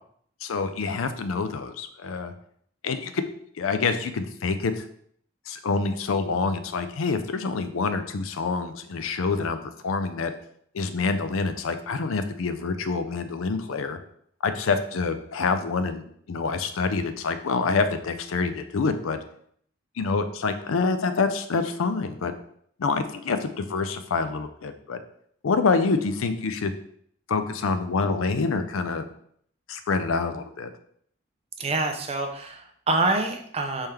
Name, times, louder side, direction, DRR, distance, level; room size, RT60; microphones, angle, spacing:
voice 1, 0.4-2.3 2.8-3.2 3.6-4.8 5.5-10.3 10.7-14.0 14.4-19.2 20.0-22.3 22.8-25.0 25.4-26.7 27.3-29.0 29.7-30.7, left 4 dB, 75° left, 10 dB, 0.5 m, -26 dB
voice 2, 31.6-33.9, right 2 dB, 30° right, 5 dB, 0.5 m, -26 dB
4.3 x 3.6 x 3.3 m, 0.64 s
head